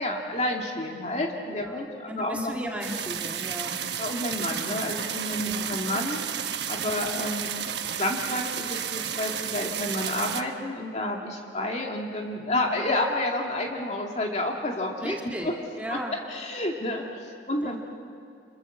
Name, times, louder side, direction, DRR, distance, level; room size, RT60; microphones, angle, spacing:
voice 1, 0.0-2.5 4.0-7.5 7.9-15.1 15.4-15.5 15.9-16.0 16.3-17.8, left 1 dB, 40° left, 0 dB, 2.3 m, -30 dB
voice 2, 1.5-3.8 5.4-5.7 6.8-7.1 15.0-15.5 15.8-16.1 17.6-17.8, equal, 10° right, -1 dB, 1.8 m, -36 dB
sound 1, 2.8-10.4, right 9 dB, 70° right, 1.1 m, -32 dB
30.0 x 27.0 x 7.3 m, 2.3 s
head